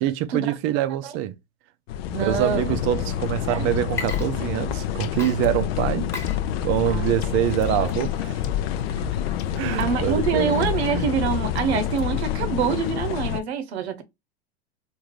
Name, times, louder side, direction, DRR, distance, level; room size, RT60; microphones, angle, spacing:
voice 1, 0.0-1.4 2.1-6.1 6.6-8.4 9.6-11.1, right 12 dB, 40° right, 0.5 m, -25 dB
sound 1, 1.9-13.4, left 9 dB, 65° left, 0.6 m, -28 dB
voice 2, 2.1-2.6 3.5-3.7 6.9-7.2 9.8-14.0, right 6 dB, 75° right, 0.9 m, -25 dB
Water / Liquid, 3.8-4.9 5.2-13.4, left 4 dB, 10° left, 1.1 m, -41 dB
sound 2, 4.1-12.7, left 10 dB, 45° left, 1.0 m, -32 dB
3.7 x 2.7 x 3.1 m
hypercardioid pair, 110°, 32 cm